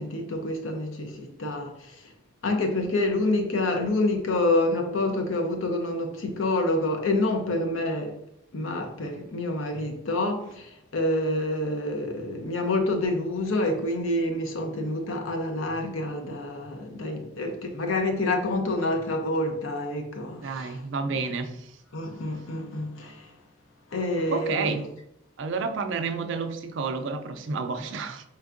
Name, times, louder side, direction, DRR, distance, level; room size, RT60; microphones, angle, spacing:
voice 1, 0.0-2.0 2.4-8.2 8.5-20.8 21.9-23.4 23.9-24.8, left 2 dB, 75° left, 0.6 m, -27 dB
voice 2, 20.4-21.7 22.1-22.2 24.3-24.9 25.4-28.2, right 4 dB, 60° right, 0.4 m, -30 dB
4.4 x 3.4 x 2.5 m
head